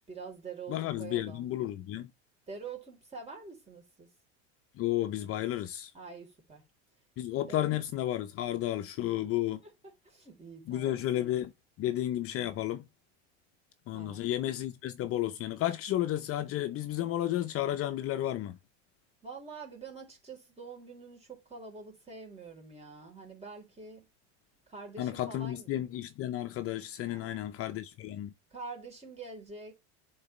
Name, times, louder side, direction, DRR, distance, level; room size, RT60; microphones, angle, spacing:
voice 1, 0.1-1.5 2.5-4.1 5.9-6.6 7.5-7.8 9.6-9.7 10.0-11.0 11.3-11.4 13.9-14.2 19.2-24.1 24.7-25.8 27.0-27.5 28.5-29.7, right 4 dB, 20° right, 3.9 m, -46 dB
voice 2, 0.7-2.1 4.8-5.9 7.2-9.6 10.7-11.5 11.8-12.9 13.9-18.6 25.0-28.3, left 13 dB, 40° left, 0.7 m, -32 dB
10.0 x 4.1 x 3.2 m
supercardioid pair, 110°, 34 cm